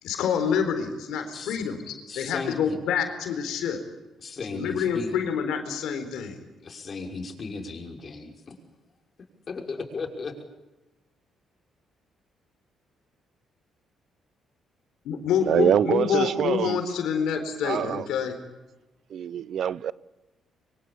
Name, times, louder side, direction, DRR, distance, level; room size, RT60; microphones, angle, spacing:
voice 1, 0.0-3.8 4.5-6.4 15.0-18.4, left 7 dB, 85° left, 4.1 m, -27 dB
voice 2, 2.1-2.8 4.2-5.2 6.6-8.6 9.5-10.3, left 4 dB, 40° left, 5.7 m, -35 dB
voice 3, 15.4-16.8 17.6-18.1 19.1-19.9, right 9 dB, 65° right, 0.8 m, -24 dB
24.5 x 24.5 x 8.6 m
cardioid pair, 90°, 0 cm